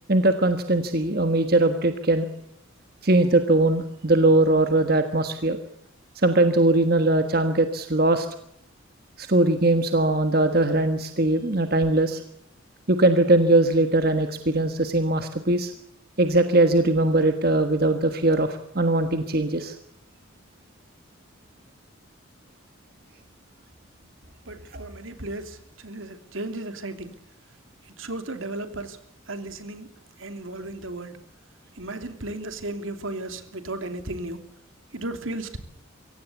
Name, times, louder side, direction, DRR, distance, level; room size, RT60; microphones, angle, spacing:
voice 1, 0.1-2.3 3.0-5.6 6.2-8.3 9.2-12.2 12.9-15.7 16.2-19.7 24.7-24.8, right 2 dB, 45° right, 8 dB, 1.4 m, -21 dB
voice 2, 24.5-27.1 28.0-29.0 29.3-29.9 30.2-31.2 31.8-34.4 34.9-35.6, right 2 dB, 75° right, 8 dB, 2.9 m, -34 dB
24.0 x 17.0 x 8.4 m, 0.79 s
head